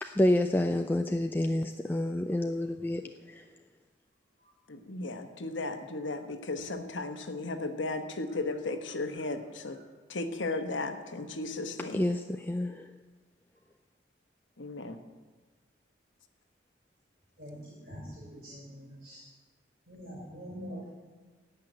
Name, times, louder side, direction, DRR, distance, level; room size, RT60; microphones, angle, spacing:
voice 1, 0.0-3.0 3.3-3.4 11.9-12.9, left 1 dB, 10° left, 5 dB, 0.4 m, -28 dB
voice 2, 4.7-9.8 10.1-12.0 14.6-15.0, left 2 dB, 85° left, 7 dB, 1.3 m, -35 dB
voice 3, 17.9-19.2 19.9-20.9, equal, 50° right, -7 dB, 5.7 m, -44 dB
17.0 x 5.8 x 9.2 m, 1.3 s
head